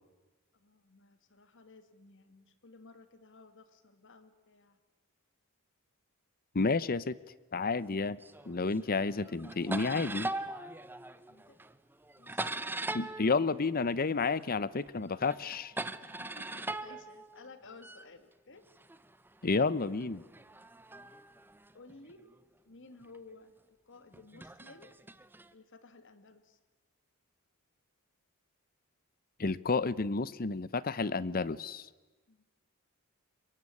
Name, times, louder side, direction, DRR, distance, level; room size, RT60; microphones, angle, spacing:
voice 1, 0.5-4.8 11.3-11.6 12.2-12.5 16.0-18.6 21.7-22.3 22.7-24.9 25.5-26.6 32.3-32.4, left 3 dB, 60° left, 10 dB, 2.0 m, -55 dB
voice 2, 6.5-7.2 7.5-8.2 8.5-10.3 12.9-15.7 19.4-20.2 29.4-31.9, left 4 dB, 45° left, 19 dB, 0.8 m, -31 dB
sound 1, 8.2-8.9 9.2-14.5 14.8-18.1 18.8-22.3 23.0-23.2 24.1-25.5, right 2 dB, 10° right, 0.8 m, -41 dB
23.0 x 22.5 x 9.7 m, 1.2 s
head